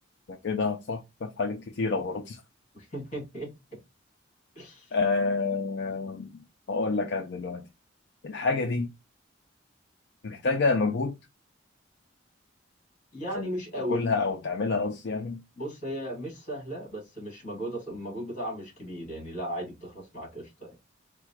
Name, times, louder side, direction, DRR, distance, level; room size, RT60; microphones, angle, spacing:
voice 1, 0.3-2.4 4.9-6.3 6.7-7.6 8.2-8.9 10.2-11.2 13.3-13.5 13.9-15.4, left 4 dB, 60° left, 0.5 m, -28 dB
voice 2, 2.7-3.5 4.6-4.9 13.1-14.1 15.6-20.8, equal, 40° left, 2.3 m, -36 dB
4.7 x 2.2 x 4.6 m
head